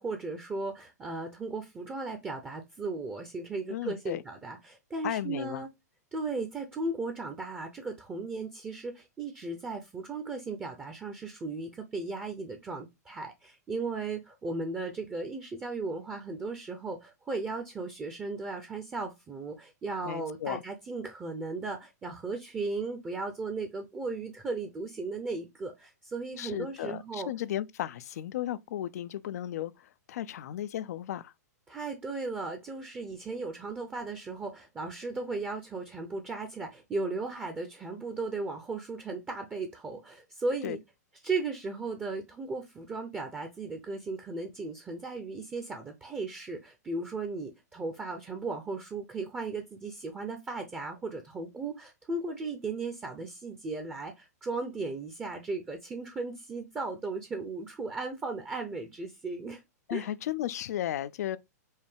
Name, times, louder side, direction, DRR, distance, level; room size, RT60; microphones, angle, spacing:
voice 1, 0.0-5.7 6.1-27.3 31.7-40.8 41.2-59.6 59.9-60.1, right 3 dB, 15° right, 0.7 m, -36 dB
voice 2, 3.7-4.2 5.0-5.7 20.0-20.6 26.4-31.3 40.6-40.8 59.9-61.4, left 12 dB, 65° left, 0.4 m, -35 dB
5.4 x 2.2 x 3.3 m
hypercardioid pair, 125°, 9 cm